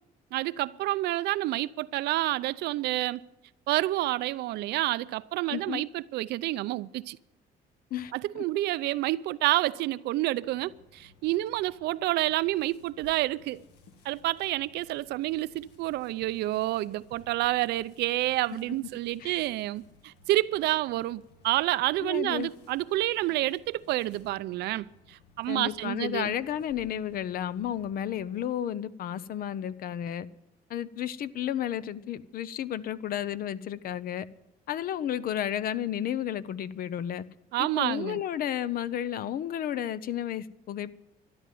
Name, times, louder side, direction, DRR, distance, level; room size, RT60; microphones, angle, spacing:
voice 1, 0.3-3.2 3.7-7.2 8.1-13.6 14.0-26.3 37.5-38.2, right 16 dB, 80° right, 0.5 m, -29 dB
voice 2, 5.5-5.8 7.9-8.4 19.2-19.4 22.0-22.5 25.5-30.3 30.7-34.3 34.7-37.2 37.6-40.9, left 10 dB, 60° left, 0.8 m, -32 dB
sound 1, 10.4-28.5, left 3 dB, 85° left, 2.2 m, -59 dB
13.0 x 11.0 x 9.4 m
cardioid pair, 110°, 17 cm